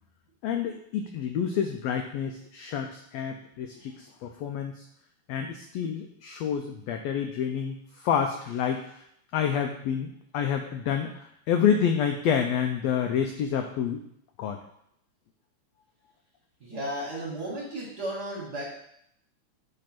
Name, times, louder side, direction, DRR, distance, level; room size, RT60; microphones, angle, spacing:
voice 1, 0.4-4.9 5.3-9.1 9.3-14.0 14.4-14.6, left 8 dB, 85° left, 5 dB, 1.5 m, -28 dB
voice 2, 16.6-18.7, right 1 dB, 40° right, -4 dB, 1.5 m, -34 dB
8.7 x 3.3 x 5.9 m, 0.74 s
omnidirectional pair, 3.5 m